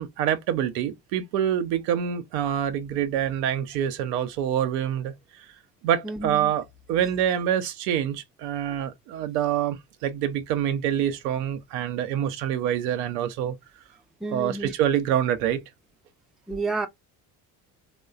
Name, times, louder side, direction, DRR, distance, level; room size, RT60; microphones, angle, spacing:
voice 1, 0.0-5.5 5.8-13.5 14.3-15.6, right 10 dB, 75° right, 0.6 m, -26 dB
voice 2, 6.0-6.5 14.2-14.7 16.5-16.9, right 3 dB, ahead, 0.5 m, -30 dB
3.0 x 2.1 x 2.3 m
hypercardioid pair, 55°, 49 cm